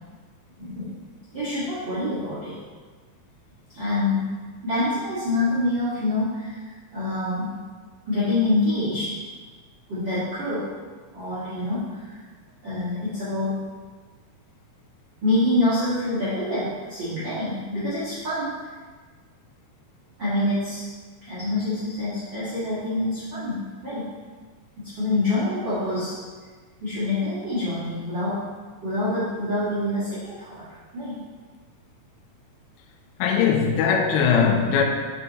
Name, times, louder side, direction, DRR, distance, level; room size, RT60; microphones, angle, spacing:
voice 1, 0.6-0.9 1.3-2.6 3.7-4.2 4.6-7.6 8.0-9.1 9.9-10.7 11.1-12.1 12.6-13.6 15.2-18.5 20.2-20.8 21.2-24.1 24.8-26.2 26.8-28.4 28.8-30.6 30.9-31.2, left 2 dB, 40° right, 2.0 m, -26 dB
voice 2, 33.2-34.8, left 6 dB, 85° left, 2.2 m, -20 dB
6.1 x 5.7 x 4.1 m
omnidirectional pair, 4.7 m